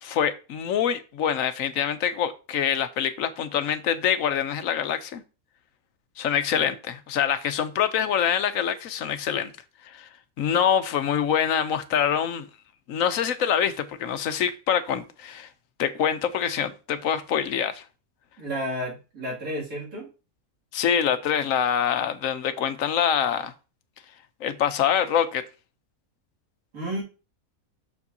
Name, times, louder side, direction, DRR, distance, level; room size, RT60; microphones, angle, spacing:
voice 1, 0.0-5.2 6.2-9.5 9.8-10.1 10.4-12.5 12.9-15.5 15.8-17.8 20.7-23.5 24.4-25.4, left 8 dB, 70° left, 1.0 m, -25 dB
voice 2, 18.4-20.1 26.7-27.0, equal, 75° right, 2.9 m, -32 dB
7.0 x 6.6 x 2.7 m
omnidirectional pair, 1.5 m